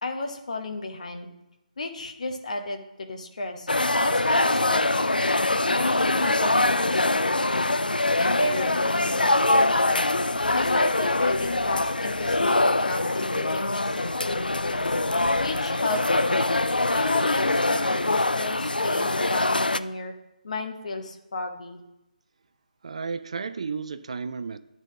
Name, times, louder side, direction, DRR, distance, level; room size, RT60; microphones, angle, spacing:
voice 1, 0.0-1.3 1.8-3.7 4.0-5.2 5.7-7.8 8.2-10.1 10.5-14.8 15.4-16.4 16.9-20.1 20.4-21.8, left 2 dB, 50° left, 5 dB, 1.0 m, -32 dB
sound 1, 3.7-19.8, left 2 dB, 85° left, 0.4 m, -24 dB
voice 2, 22.8-24.6, right 5 dB, 45° right, 12 dB, 0.4 m, -33 dB
10.5 x 4.0 x 6.2 m, 0.94 s
figure-of-eight pair, 150°, 5 cm